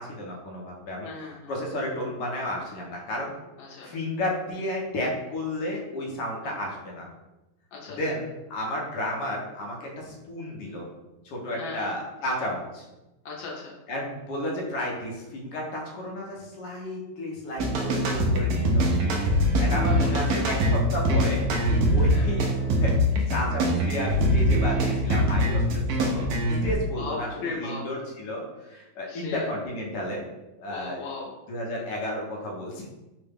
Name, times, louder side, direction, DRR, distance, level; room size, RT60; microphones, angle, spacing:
voice 1, 0.0-1.1 1.5-3.3 3.8-7.1 8.0-10.9 11.2-12.9 13.9-18.9 19.6-21.4 21.9-22.5 22.8-23.0 23.3-25.6 26.0-26.3 26.6-30.2 30.6-31.0 31.5-32.9, left 1 dB, 65° left, -2 dB, 1.2 m, -32 dB
voice 2, 1.0-1.5 3.6-3.9 6.4-6.5 7.7-8.0 11.6-11.9 13.2-13.7 19.8-20.5 22.1-22.3 27.0-27.8 29.1-29.5 30.7-31.3, left 3 dB, 80° left, -2 dB, 1.4 m, -37 dB
sound 1, 17.6-26.7, equal, 75° right, 0.8 m, -23 dB
3.7 x 2.1 x 3.4 m, 1.0 s
omnidirectional pair, 2.1 m